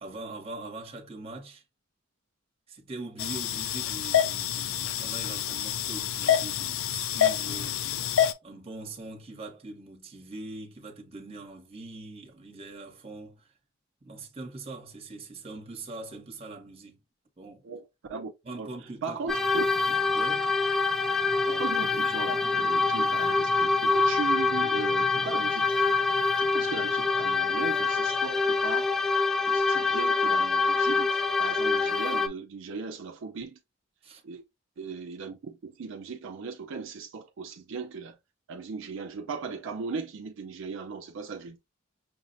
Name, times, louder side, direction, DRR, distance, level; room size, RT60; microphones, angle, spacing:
voice 1, 0.0-1.6 2.7-8.1 8.4-13.5 14.0-17.0 17.4-17.6 18.4-19.4 20.1-20.5 34.0-34.2, right 2 dB, 30° right, 0.9 m, -42 dB
sound 1, 3.2-8.3, left 10 dB, 80° left, 0.4 m, -27 dB
voice 2, 18.6-19.7 21.5-25.9 26.4-28.9 29.5-33.6 34.2-34.4 34.8-38.2 38.5-41.6, right 5 dB, 65° right, 0.4 m, -37 dB
sound 2, 19.3-32.3, left 4 dB, ahead, 0.3 m, -25 dB
5.8 x 2.0 x 2.6 m
head